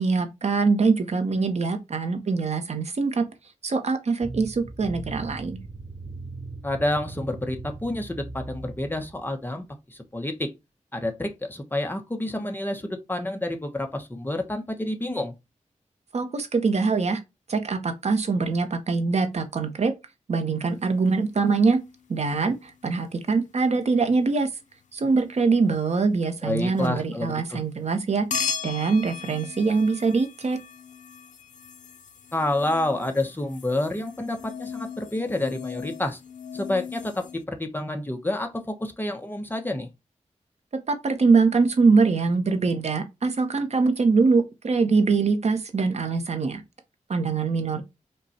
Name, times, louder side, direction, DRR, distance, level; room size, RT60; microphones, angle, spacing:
voice 1, 0.0-3.2 3.6-5.6 16.1-17.2 17.5-19.9 20.3-21.8 22.1-24.5 24.9-28.2 28.6-30.6 40.9-46.6 47.1-47.8, right 4 dB, 60° right, 0.8 m, -23 dB
sound 1, 4.2-9.4, right 3 dB, 25° right, 0.6 m, -39 dB
voice 2, 6.6-10.5 10.9-15.3 26.4-27.6 32.3-36.2 36.5-39.9, left 1 dB, 15° left, 0.8 m, -29 dB
sound 2, 20.9-22.2 22.7-23.1 26.4-26.9 28.3-37.4, left 6 dB, 75° left, 0.5 m, -37 dB
5.3 x 2.3 x 4.1 m
wide cardioid pair, 115°, 13 cm